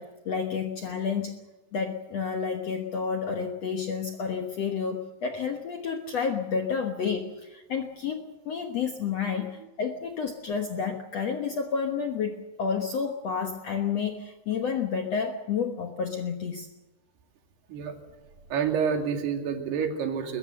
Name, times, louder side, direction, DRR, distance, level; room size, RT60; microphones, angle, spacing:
voice 1, 0.0-1.4 1.7-16.7, left 6 dB, 65° left, 5 dB, 1.7 m, -30 dB
voice 2, 18.5-20.4, right 7 dB, 80° right, 4 dB, 4.4 m, -28 dB
22.0 x 21.5 x 6.6 m, 1.1 s
omnidirectional pair, 4.6 m